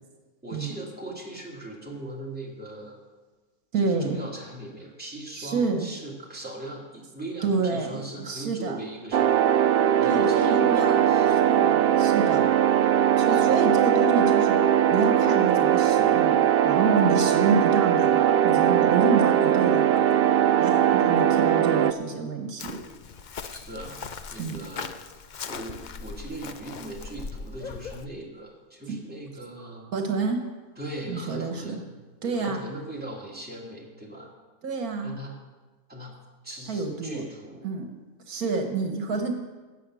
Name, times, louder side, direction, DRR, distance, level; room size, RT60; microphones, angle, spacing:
voice 1, 0.4-3.0 3.7-9.4 10.0-11.5 13.2-13.5 23.5-25.0 25.4-29.9 30.8-31.9 32.3-34.3 35.0-35.3 35.9-36.2 36.4-37.7, right 1 dB, 5° right, -3 dB, 2.4 m, -39 dB
voice 2, 3.7-4.2 5.3-5.9 7.4-8.8 10.0-12.5 13.2-14.6 14.9-20.1 20.6-22.8 24.4-24.6 28.9-29.0 29.9-30.4 31.1-31.7 32.2-32.6 34.6-35.2 36.7-37.2 37.6-37.9 38.3-39.3, right 4 dB, 75° right, 4 dB, 1.7 m, -28 dB
sound 1, 9.1-21.9, right 10 dB, 90° right, 0.5 m, -20 dB
Chirp tweet, 22.6-28.1, left 5 dB, 70° left, 0.4 m, -39 dB
16.0 x 7.0 x 6.2 m, 1.3 s
omnidirectional pair, 1.6 m